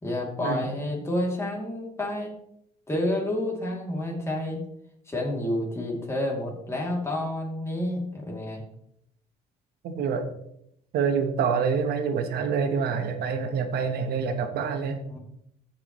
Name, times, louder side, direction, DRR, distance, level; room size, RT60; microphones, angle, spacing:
voice 1, 0.0-2.3 2.9-4.6 5.1-8.6 15.1-15.2, left 1 dB, 15° left, -2 dB, 2.7 m, -29 dB
voice 2, 9.8-10.3 10.9-15.0, right 6 dB, 70° right, 7 dB, 1.2 m, -26 dB
15.0 x 6.0 x 3.1 m, 0.76 s
cardioid pair, 110°, 17 cm